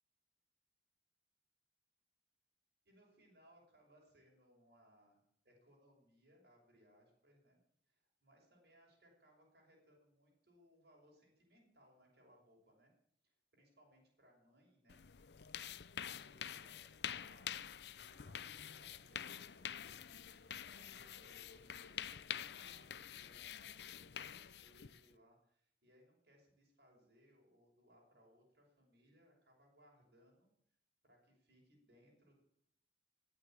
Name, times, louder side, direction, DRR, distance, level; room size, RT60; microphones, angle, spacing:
voice 1, 2.8-7.6 7.9-12.9 13.2-15.0 15.9-30.5 31.0-32.4, equal, 60° right, -1 dB, 5.9 m, -69 dB
sound 1, 14.9-25.1, left 9 dB, 70° left, 0.6 m, -47 dB
sound 2, 18.8-23.8, right 2 dB, 35° right, 0.9 m, -71 dB
18.0 x 8.6 x 8.8 m, 0.70 s
head